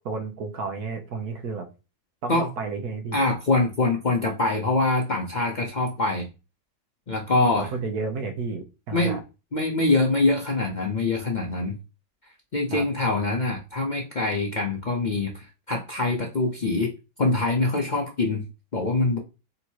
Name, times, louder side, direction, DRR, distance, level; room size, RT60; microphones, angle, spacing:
voice 1, 0.0-1.7 2.2-3.2 7.5-9.2 12.7-12.9, right 4 dB, 60° right, 4 dB, 1.4 m, -31 dB
voice 2, 3.1-6.3 7.1-7.7 8.9-9.2 9.5-11.8 12.5-16.9 17.2-18.5 18.7-19.2, left 2 dB, 75° left, 0 dB, 0.4 m, -24 dB
3.7 x 2.8 x 4.5 m, 0.29 s
omnidirectional pair, 1.9 m